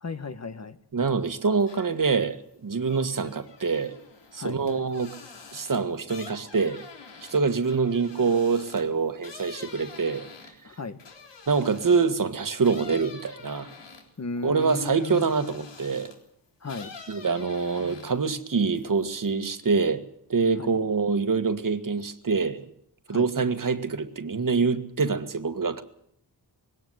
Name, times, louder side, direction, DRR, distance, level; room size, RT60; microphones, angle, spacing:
voice 1, 0.0-0.8 4.3-4.6 10.6-11.0 14.2-15.3 16.6-17.0 20.6-20.8 23.1-23.3, left 4 dB, 40° left, 1.6 m, -35 dB
voice 2, 0.9-4.0 4.3-5.1 5.5-6.8 7.3-10.3 11.5-13.7 14.4-16.1 17.1-20.0 20.3-22.7 23.1-25.8, right 5 dB, 50° right, 1.9 m, -25 dB
sound 1, 1.6-2.1 2.5-12.2 12.6-16.3 16.6-18.3 18.7-19.3, left 5 dB, 90° left, 3.9 m, -47 dB
20.5 x 17.5 x 8.1 m
wide cardioid pair, 85°, 41 cm